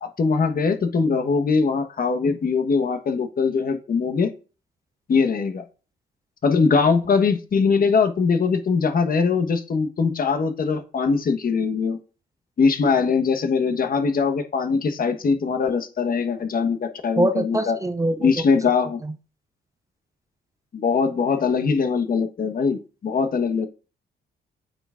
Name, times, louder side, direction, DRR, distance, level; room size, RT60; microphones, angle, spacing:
voice 1, 0.0-4.3 5.1-5.6 6.4-12.0 12.6-17.8 18.2-19.0 20.7-23.7, left 5 dB, 45° left, 7 dB, 1.3 m, -21 dB
voice 2, 17.2-18.3, right 1 dB, 15° right, 10 dB, 0.5 m, -23 dB
8.8 x 5.9 x 2.5 m, 0.34 s
cardioid pair, 90°, 20 cm